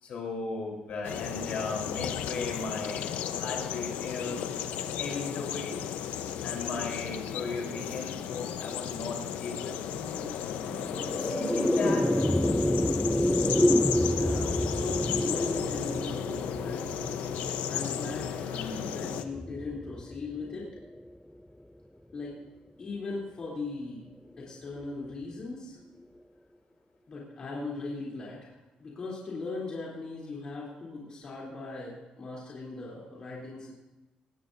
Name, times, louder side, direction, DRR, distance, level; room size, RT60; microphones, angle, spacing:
voice 1, 0.0-4.4 4.9-5.8 6.4-10.3 11.1-12.0, left 3 dB, 50° left, 0 dB, 4.1 m, -36 dB
sound 1, 1.0-19.2, left 9 dB, 85° left, 0.9 m, -34 dB
sound 2, 10.6-21.1, left 1 dB, 5° left, 0.4 m, -29 dB
voice 2, 11.8-12.9 14.1-15.0 15.3-16.8 17.6-18.4 18.8-20.7 22.1-22.3 22.8-24.1 24.4-25.8 27.1-33.7, left 3 dB, 30° left, -5 dB, 3.4 m, -39 dB
Sigh, 18.3-19.0, equal, 60° right, 4.2 m, -42 dB
20.0 x 17.0 x 2.7 m, 1.1 s
cardioid pair, 165°, 3 cm